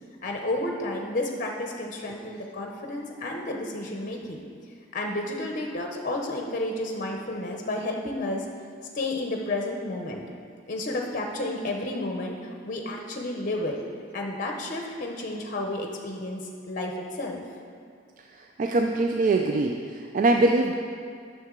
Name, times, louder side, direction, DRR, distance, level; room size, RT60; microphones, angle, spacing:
voice 1, 0.2-4.4 4.9-8.5 8.9-10.2 10.7-13.8 14.1-17.4, left 2 dB, 45° left, 2 dB, 0.7 m, -31 dB
voice 2, 18.6-20.7, right 2 dB, 45° right, 3 dB, 0.3 m, -23 dB
9.4 x 6.5 x 3.7 m, 2.3 s
head